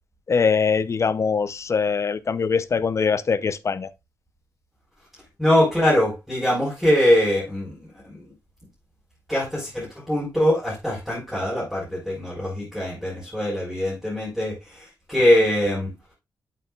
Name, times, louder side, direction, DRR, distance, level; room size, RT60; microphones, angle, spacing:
voice 1, 0.3-3.9, left 5 dB, 40° left, 0.7 m, -22 dB
voice 2, 5.4-8.2 9.3-15.9, left 1 dB, ahead, 4.4 m, -22 dB
8.3 x 8.1 x 2.4 m
wide cardioid pair, 120°, 7 cm